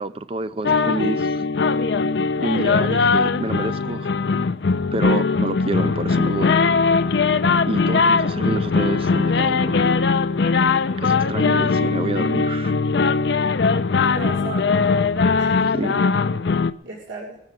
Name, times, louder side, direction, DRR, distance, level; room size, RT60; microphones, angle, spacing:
voice 1, 0.0-1.4 2.4-4.1 4.9-6.7 7.7-9.8 11.0-12.8 15.7-16.0, right 2 dB, 30° right, 0.5 m, -28 dB
sound 1, 0.6-16.7, left 4 dB, 65° left, 0.5 m, -20 dB
voice 2, 11.2-11.6 14.1-14.8 15.3-15.7 16.8-17.4, right 2 dB, 90° right, 2.6 m, -35 dB
20.0 x 9.8 x 5.9 m
head